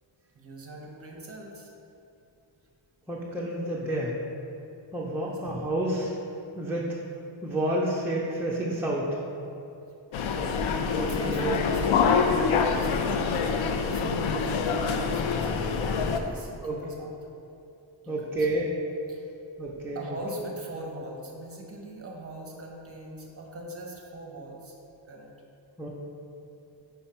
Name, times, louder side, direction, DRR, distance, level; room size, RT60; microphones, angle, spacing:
voice 1, 0.3-1.7 5.2-5.4 10.2-10.6 11.0-17.1 18.0-18.5 19.1-19.2 19.9-24.7 25.0-25.3, right 1 dB, 30° right, 0 dB, 1.0 m, -42 dB
voice 2, 3.1-4.1 4.9-6.1 6.6-6.9 7.4-9.2 10.9-11.6 16.6-16.8 18.1-18.7 19.6-20.0 25.8-25.9, right 1 dB, 5° right, -5 dB, 0.5 m, -29 dB
sound 1, 10.1-16.2, left 5 dB, 90° left, 0.6 m, -26 dB
5.7 x 5.5 x 4.4 m, 2.8 s
wide cardioid pair, 170°, 46 cm